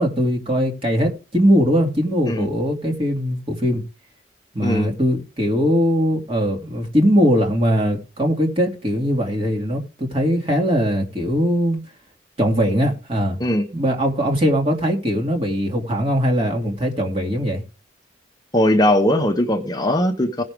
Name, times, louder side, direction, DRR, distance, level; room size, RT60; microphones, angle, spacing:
voice 1, 0.0-3.8 4.5-11.8 12.4-13.4 13.7-17.6, equal, 30° right, 2.5 m, -20 dB
voice 2, 18.5-20.4, left 1 dB, 20° left, 0.9 m, -19 dB
17.0 x 6.4 x 3.6 m
head